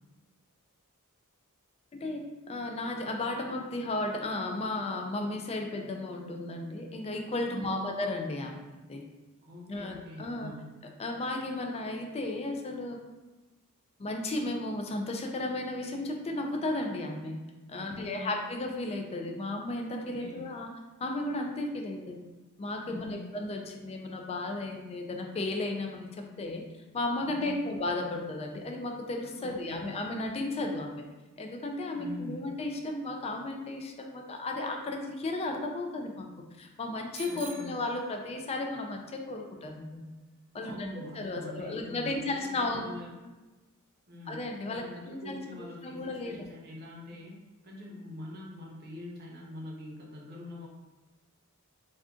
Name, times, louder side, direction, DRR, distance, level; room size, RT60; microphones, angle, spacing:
voice 1, 2.5-9.0 9.7-10.5 11.0-13.0 14.0-17.4 17.7-20.7 21.0-22.2 22.6-26.1 26.4-26.6 26.9-31.0 31.4-36.3 36.6-40.0 40.5-42.9 44.3-45.4 45.8-46.5, left 2 dB, 30° left, 2 dB, 0.3 m, -34 dB
voice 2, 7.5-7.8 9.4-10.7 17.7-18.3 20.0-20.4 22.8-23.3 27.2-27.7 29.4-29.9 31.9-32.5 37.3-37.8 40.6-43.1 44.1-47.4 47.6-50.7, left 1 dB, 50° right, -3 dB, 0.7 m, -44 dB
Bicycle bell, 37.1-38.7, right 6 dB, 80° right, 0.5 m, -47 dB
2.4 x 2.4 x 3.6 m, 1.1 s
head